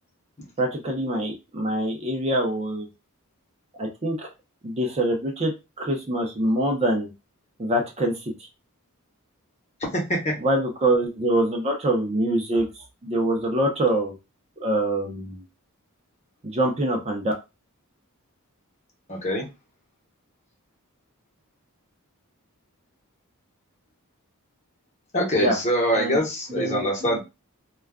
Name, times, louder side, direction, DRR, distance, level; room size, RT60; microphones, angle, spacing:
voice 1, 0.6-2.9 3.8-4.3 4.6-5.5 5.8-7.1 7.6-8.1 10.4-14.1 14.6-15.4 16.4-17.3 25.4-25.6 25.9-26.2 26.5-27.2, right 1 dB, 30° right, 1 dB, 0.5 m, -24 dB
voice 2, 9.9-10.4 19.1-19.5 25.1-27.2, equal, 30° left, -1 dB, 0.9 m, -24 dB
2.3 x 2.2 x 3.4 m, 0.26 s
head